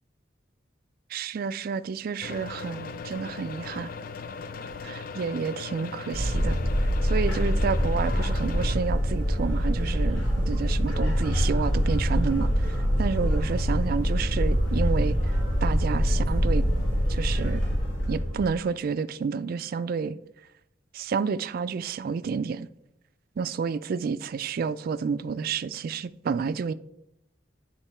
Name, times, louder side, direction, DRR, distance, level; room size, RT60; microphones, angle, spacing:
voice 1, 1.1-3.9 4.8-6.6 7.0-15.3 15.6-16.7 17.1-17.6 18.1-20.2 20.9-22.7 23.4-26.7, right 5 dB, 50° right, 0.3 m, -30 dB
sound 1, 2.2-8.8, left 5 dB, 50° left, 0.3 m, -38 dB
sound 2, 6.1-18.5, equal, 85° left, 2.8 m, -25 dB
10.0 x 3.6 x 4.3 m
head